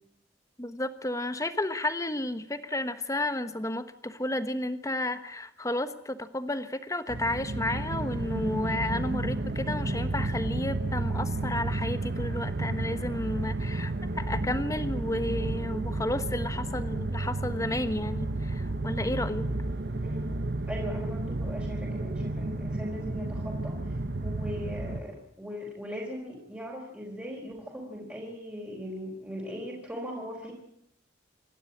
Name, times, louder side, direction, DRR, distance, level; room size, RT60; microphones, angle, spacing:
voice 1, 0.6-19.5, left 1 dB, 20° left, 10 dB, 1.3 m, -32 dB
sound 1, 7.1-25.0, right 2 dB, 65° right, 1.1 m, -32 dB
voice 2, 20.0-20.3 20.7-30.5, equal, 10° right, -4 dB, 4.4 m, -39 dB
27.0 x 12.0 x 8.7 m, 0.73 s
head